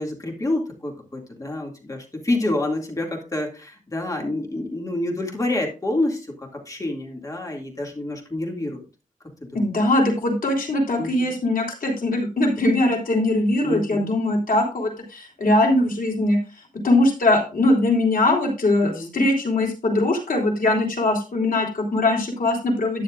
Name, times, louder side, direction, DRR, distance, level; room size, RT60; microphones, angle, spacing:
voice 1, 0.0-8.8 9.4-9.7 11.0-11.3 13.6-14.1 18.8-19.1, left 2 dB, 25° left, 1 dB, 2.3 m, -28 dB
voice 2, 9.5-16.4 16.8-23.0, left 2 dB, 85° left, 0 dB, 3.6 m, -21 dB
13.0 x 9.4 x 2.5 m, 0.33 s
wide cardioid pair, 150°, 14 cm